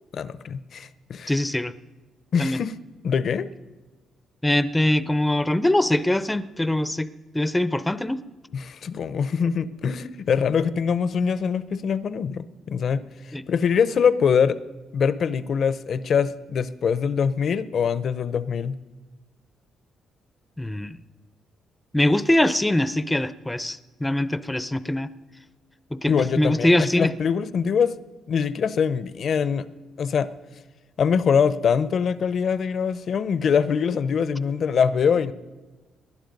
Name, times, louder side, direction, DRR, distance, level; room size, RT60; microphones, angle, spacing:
voice 1, 0.1-1.3 2.3-2.7 3.0-3.5 8.5-14.6 14.9-18.8 26.1-27.9 28.3-29.7 30.0-30.3 31.0-35.3, left 6 dB, 55° left, 16 dB, 0.7 m, -23 dB
voice 2, 1.3-1.7 2.4-2.6 4.4-8.2 13.3-13.4 20.6-21.0 21.9-25.1 25.9-27.1, left 1 dB, 10° left, 15 dB, 0.6 m, -23 dB
19.0 x 11.0 x 5.4 m, 1.2 s
cardioid pair, 90°, 0 cm